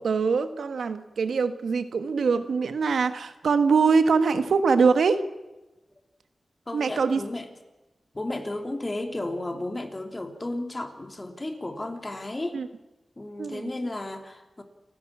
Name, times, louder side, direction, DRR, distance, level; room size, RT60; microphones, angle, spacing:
voice 1, 0.0-5.2 6.7-7.2 12.5-12.7 13.4-13.7, right 5 dB, 85° right, 10 dB, 1.3 m, -23 dB
voice 2, 6.7-7.5 8.1-12.6 13.2-14.6, left 1 dB, 30° left, 5 dB, 2.9 m, -33 dB
29.0 x 11.0 x 8.7 m, 1.1 s
cardioid pair, 65°, 0 cm